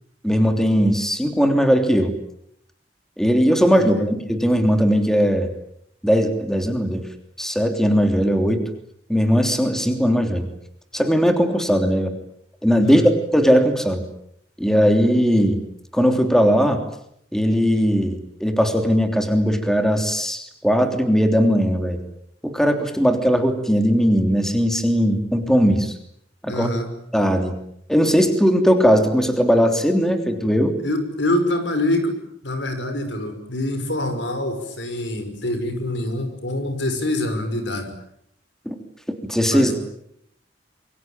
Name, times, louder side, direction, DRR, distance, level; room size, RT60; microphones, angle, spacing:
voice 1, 0.2-2.1 3.2-5.5 6.0-7.0 7.4-8.6 9.1-10.5 10.9-12.1 12.6-13.0 13.3-14.0 14.6-15.6 15.9-16.8 17.3-22.0 22.4-25.9 26.4-26.7 27.1-27.5 27.9-30.8 38.6-38.7 39.3-39.7, equal, 5° left, 6 dB, 3.2 m, -18 dB
voice 2, 3.7-4.1 12.8-13.1 26.5-26.9 30.8-32.2 32.4-37.9 39.5-39.7, left 1 dB, 75° left, 8 dB, 5.9 m, -25 dB
26.5 x 24.5 x 9.1 m, 0.71 s
head